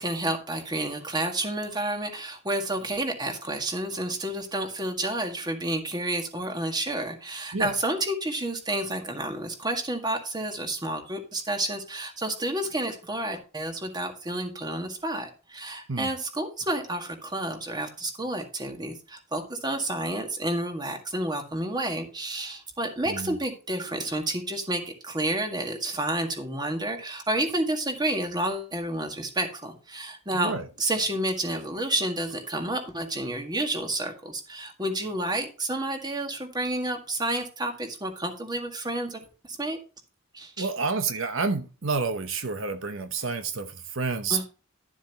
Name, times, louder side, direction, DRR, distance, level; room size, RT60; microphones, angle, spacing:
voice 1, 0.0-30.5 30.8-39.8 40.3-40.7 44.3-44.4, right 1 dB, 20° right, 1.8 m, -30 dB
voice 2, 30.3-30.7 40.6-44.4, right 4 dB, 70° right, 1.0 m, -29 dB
12.0 x 7.3 x 2.9 m
head